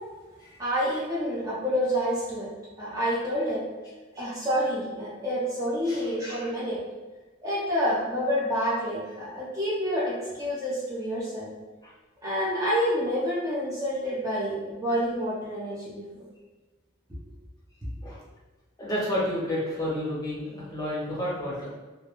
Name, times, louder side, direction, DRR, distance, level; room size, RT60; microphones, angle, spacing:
voice 1, 0.6-2.5 2.8-3.6 4.2-6.8 7.4-11.5 12.2-16.0 17.1-17.2, equal, 20° right, -8 dB, 0.5 m, -28 dB
voice 2, 18.8-21.7, left 1 dB, 20° left, -7 dB, 0.7 m, -30 dB
2.2 x 2.2 x 2.9 m, 1.3 s
head